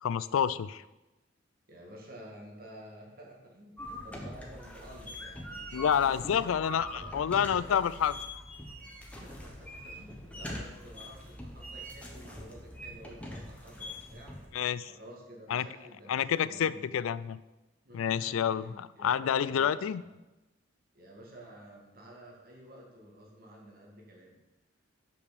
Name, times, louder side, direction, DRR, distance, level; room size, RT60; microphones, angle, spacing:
voice 1, 0.0-0.8 5.7-8.1 14.5-14.9 15.5-15.7 16.1-17.4 17.9-20.0, left 8 dB, 85° left, 17 dB, 0.4 m, -28 dB
voice 2, 1.7-7.8 9.2-14.4 14.9-16.9 17.9-20.1 20.9-24.4, right 1 dB, 50° right, -2 dB, 1.9 m, -51 dB
sound 1, 3.8-14.5, left 1 dB, 5° left, 1.1 m, -43 dB
6.2 x 5.7 x 6.8 m, 1.0 s
head